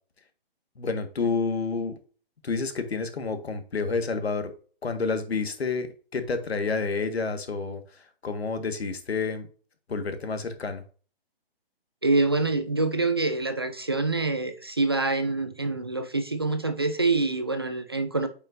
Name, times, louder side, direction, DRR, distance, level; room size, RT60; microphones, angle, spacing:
voice 1, 0.7-2.0 2.4-4.5 4.8-9.5 9.9-10.8, left 4 dB, 90° left, 1.7 m, -29 dB
voice 2, 12.0-18.3, right 3 dB, 25° right, 0.4 m, -26 dB
8.8 x 5.5 x 2.6 m
hypercardioid pair, 170°, 30 cm